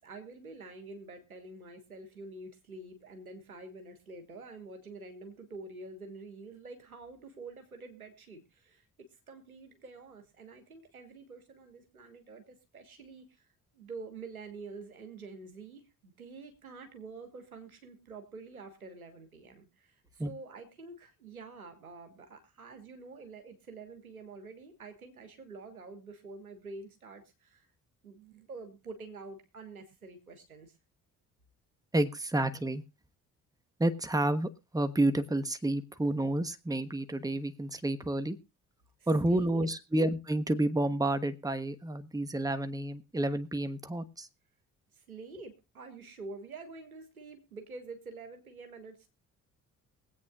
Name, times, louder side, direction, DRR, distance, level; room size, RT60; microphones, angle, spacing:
voice 1, 0.0-8.8 9.1-13.5 13.7-27.7 28.0-30.8 39.0-39.7 44.9-49.1, right 3 dB, 85° right, 6 dB, 1.5 m, -47 dB
voice 2, 31.9-32.8 33.8-38.4 39.1-44.3, right 1 dB, 10° right, 10 dB, 1.2 m, -30 dB
23.0 x 8.5 x 2.4 m, 0.28 s
figure-of-eight pair, 45°, 42 cm